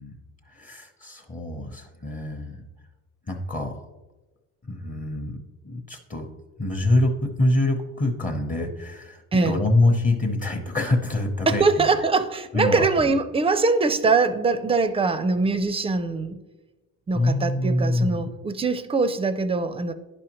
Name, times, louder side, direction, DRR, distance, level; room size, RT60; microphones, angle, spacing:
voice 1, 0.0-2.6 3.3-3.8 4.6-5.3 5.6-6.3 6.6-11.9 12.5-13.1 17.1-18.2, left 2 dB, 25° left, 2 dB, 0.8 m, -25 dB
voice 2, 11.5-16.4 17.1-19.9, right 3 dB, 20° right, 11 dB, 0.4 m, -22 dB
10.5 x 4.9 x 2.9 m, 1.1 s
cardioid pair, 110°, 31 cm